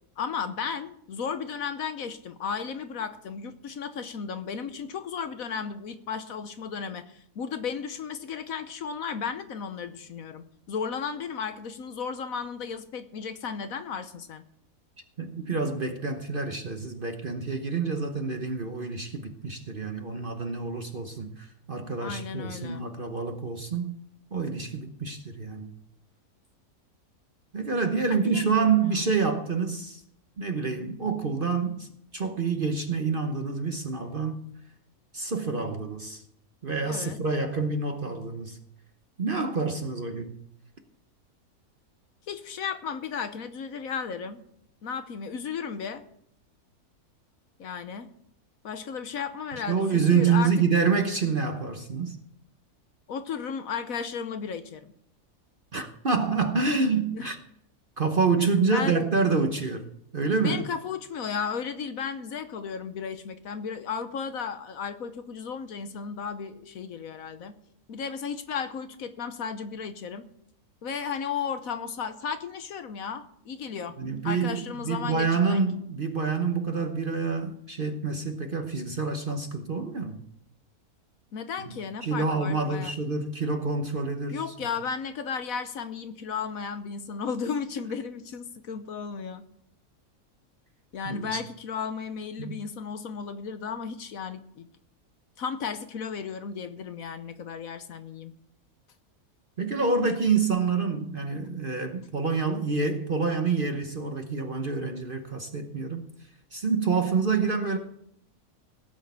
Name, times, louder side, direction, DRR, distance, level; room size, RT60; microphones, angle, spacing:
voice 1, 0.2-14.4 22.0-22.9 28.1-28.7 36.8-37.2 42.3-44.4 44.8-46.0 47.6-48.1 48.6-50.5 53.1-54.9 57.1-57.3 58.7-59.1 60.3-67.6 67.9-70.3 70.8-74.0 74.2-75.6 81.3-82.9 84.3-89.4 90.9-94.7 95.4-98.3, left 6 dB, 70° left, 1.3 m, -34 dB
voice 2, 15.2-24.0 24.3-25.7 27.5-30.0 30.4-31.9 32.1-34.4 35.1-36.2 36.6-38.6 39.2-40.4 49.7-52.2 55.7-57.4 58.0-59.9 60.1-60.6 74.0-80.2 81.6-81.7 82.0-84.4 91.0-91.4 92.4-92.6 99.6-106.1 106.5-107.8, right 4 dB, 40° right, 1.0 m, -27 dB
17.0 x 6.4 x 8.2 m
omnidirectional pair, 1.6 m